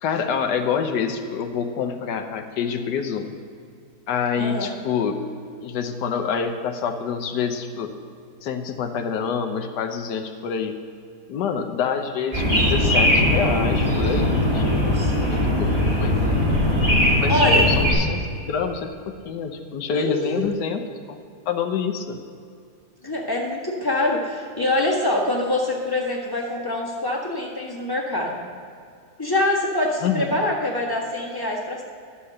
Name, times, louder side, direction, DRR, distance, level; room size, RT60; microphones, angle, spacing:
voice 1, 0.0-3.3 4.1-5.2 5.6-7.9 8.4-10.7 11.3-15.0 15.3-15.7 16.0-16.2 17.2-18.9 19.2-22.2 30.0-30.3, left 6 dB, 75° left, 7 dB, 1.3 m, -27 dB
voice 2, 4.3-4.7 14.9-15.5 17.3-17.7 19.9-20.5 23.0-28.4 29.2-31.8, left 2 dB, 15° left, -2 dB, 1.3 m, -25 dB
sound 1, 12.3-17.9, left 1 dB, 20° right, 2.1 m, -20 dB
11.5 x 6.8 x 6.4 m, 2.4 s
omnidirectional pair, 1.9 m